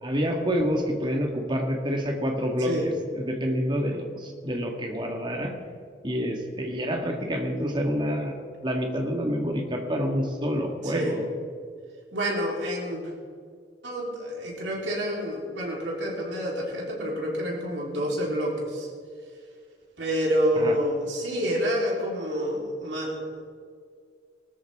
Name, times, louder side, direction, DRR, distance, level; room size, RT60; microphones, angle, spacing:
voice 1, 0.0-5.5 6.0-11.2 20.6-20.7, equal, 25° right, 2 dB, 1.8 m, -28 dB
voice 2, 10.8-11.2 12.1-13.0 13.8-18.9 20.0-23.2, equal, 85° right, -3 dB, 3.9 m, -28 dB
19.0 x 13.5 x 3.7 m, 2.1 s
head